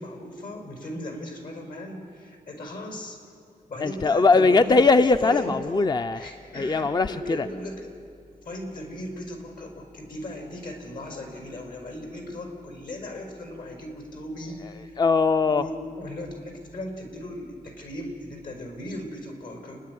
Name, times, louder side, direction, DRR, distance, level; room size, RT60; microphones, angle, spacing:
voice 1, 0.0-3.2 3.7-4.8 5.2-5.5 6.1-8.0 8.4-15.0 15.4-19.8, left 1 dB, 75° left, 3 dB, 5.0 m, -37 dB
voice 2, 3.8-6.2 6.5-7.5 15.0-15.6, left 3 dB, 30° left, 10 dB, 0.5 m, -20 dB
29.5 x 10.5 x 9.4 m, 2.3 s
cardioid pair, 70°, 15 cm